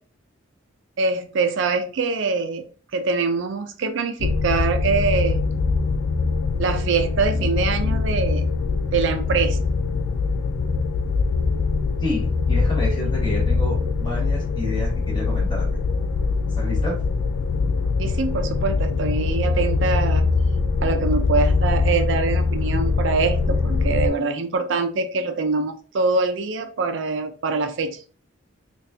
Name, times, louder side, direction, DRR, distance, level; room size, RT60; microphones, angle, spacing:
voice 1, 1.0-2.7 2.9-5.4 6.6-8.5 8.9-9.7 18.0-20.3 20.8-28.0, right 4 dB, 65° right, 7 dB, 0.4 m, -24 dB
sound 1, 4.2-24.1, left 4 dB, 90° left, 0.3 m, -22 dB
voice 2, 12.0-15.8 16.6-17.0, left 1 dB, 20° left, -2 dB, 1.2 m, -29 dB
4.0 x 2.3 x 2.7 m, 0.40 s
head